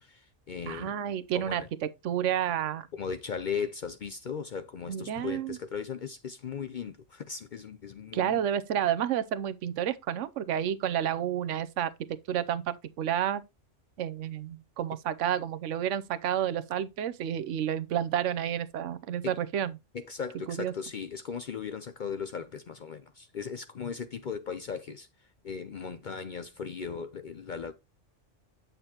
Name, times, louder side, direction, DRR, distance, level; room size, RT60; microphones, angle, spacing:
voice 1, 0.0-0.9 1.3-1.7 2.9-8.4 19.2-19.3 19.9-25.1 25.4-27.7, left 6 dB, 55° left, 0.5 m, -37 dB
voice 2, 0.7-1.6 2.0-2.9 4.9-5.6 8.1-11.9 12.3-13.4 14.0-19.7 20.5-20.7, right 10 dB, 75° right, 0.9 m, -30 dB
8.2 x 6.7 x 2.8 m
omnidirectional pair, 1.3 m